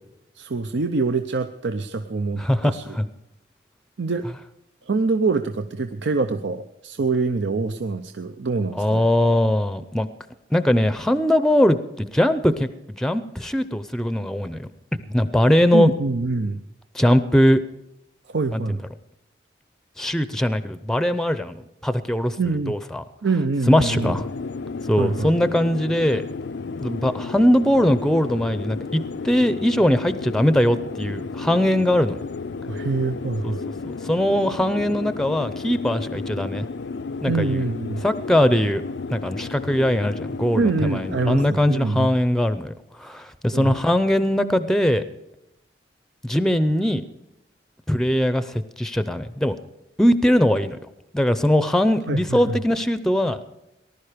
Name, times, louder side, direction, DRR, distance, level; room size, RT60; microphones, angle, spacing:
voice 1, 0.4-3.0 4.0-4.3 4.9-9.1 15.7-16.6 18.3-18.8 22.4-22.8 23.2-24.2 25.0-25.3 32.7-33.6 37.3-38.0 40.6-42.1 43.5-43.8 52.1-52.6, right 3 dB, 80° right, 8 dB, 0.6 m, -25 dB
voice 2, 2.4-3.1 8.7-10.1 10.5-12.7 13.0-14.7 15.1-15.9 16.9-17.6 18.5-18.8 20.0-21.5 21.8-22.3 22.7-23.0 23.7-24.3 24.9-26.2 26.7-32.2 33.4-33.5 34.0-36.7 37.2-37.7 38.0-38.8 39.1-42.7 43.0-45.0 46.2-47.0 47.9-49.6 50.0-50.8 51.1-53.4, left 1 dB, 5° left, 12 dB, 0.6 m, -20 dB
sound 1, 23.9-41.5, left 4 dB, 75° left, 0.4 m, -33 dB
19.0 x 11.5 x 5.1 m, 0.87 s
head